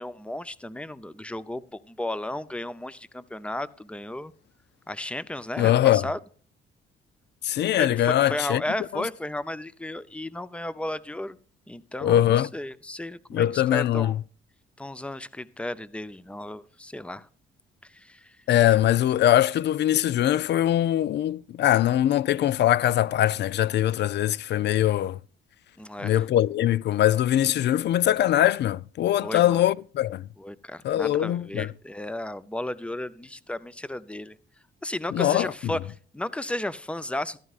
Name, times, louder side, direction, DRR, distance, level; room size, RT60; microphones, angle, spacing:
voice 1, 0.0-4.3 4.9-6.2 7.8-11.4 11.7-14.1 14.8-17.3 17.8-18.4 25.8-26.2 29.2-29.6 30.4-34.4 34.8-37.4, left 1 dB, 5° left, 0.6 m, -34 dB
voice 2, 5.6-6.1 7.4-8.6 8.9-9.0 12.0-12.5 13.3-14.2 18.5-25.2 26.0-30.2 30.8-31.7 35.1-35.5, left 12 dB, 60° left, 0.4 m, -22 dB
14.5 x 12.5 x 2.4 m
cardioid pair, 90°, 20 cm